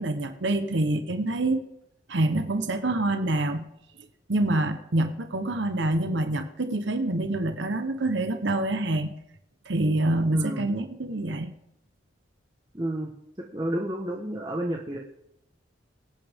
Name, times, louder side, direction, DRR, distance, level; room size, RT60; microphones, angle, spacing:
voice 1, 0.0-1.6 2.1-3.7 4.3-9.1 9.7-11.5, right 2 dB, 65° right, 8 dB, 1.0 m, -26 dB
voice 2, 10.3-10.7 12.7-13.1 13.4-15.0, right 1 dB, 20° right, 0 dB, 1.2 m, -31 dB
23.0 x 8.9 x 3.6 m, 0.77 s
head